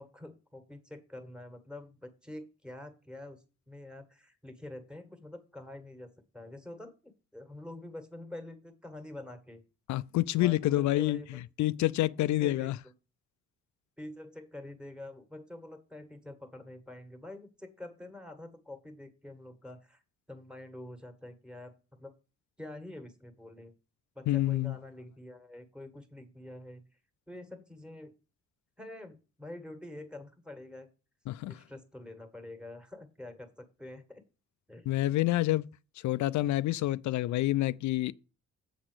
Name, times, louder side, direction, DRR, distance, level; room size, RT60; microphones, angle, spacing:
voice 1, 0.0-9.6 10.4-11.4 12.2-12.7 14.0-20.0 20.3-22.1 22.6-23.7 24.1-26.8 27.3-28.1 28.8-30.9 31.5-34.2 34.7-34.9, left 1 dB, 5° right, 1.6 m, -46 dB
voice 2, 9.9-12.8 24.3-24.8 31.3-31.5 34.9-35.7 36.0-38.1, left 16 dB, 70° left, 0.5 m, -28 dB
7.7 x 4.1 x 6.2 m
cardioid pair, 90°, 30 cm